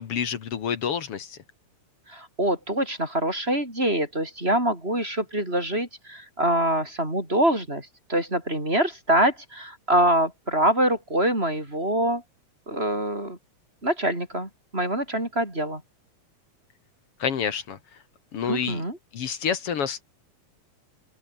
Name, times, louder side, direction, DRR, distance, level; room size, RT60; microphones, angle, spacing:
voice 1, 0.0-1.4 17.2-17.8 18.3-18.8 19.1-20.0, left 7 dB, 50° left, 2.1 m, -28 dB
voice 2, 2.1-12.2 12.7-13.4 13.8-15.8 18.5-19.0, right 1 dB, 15° right, 6.6 m, -25 dB
open air
omnidirectional pair, 3.9 m